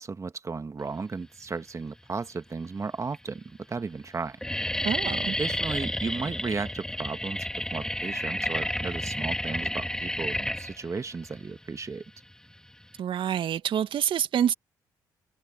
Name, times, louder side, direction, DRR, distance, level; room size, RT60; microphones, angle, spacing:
voice 1, 0.0-4.4 5.4-12.0, right 4 dB, 30° right, 1.7 m, -34 dB
sound 1, 1.8-2.4 3.1-3.2 3.4-3.8 4.1-13.0, left 1 dB, 5° left, 3.2 m, -31 dB
voice 2, 4.8-5.4 13.0-14.5, right 9 dB, 60° right, 2.2 m, -27 dB
hypercardioid pair, 50°, 10 cm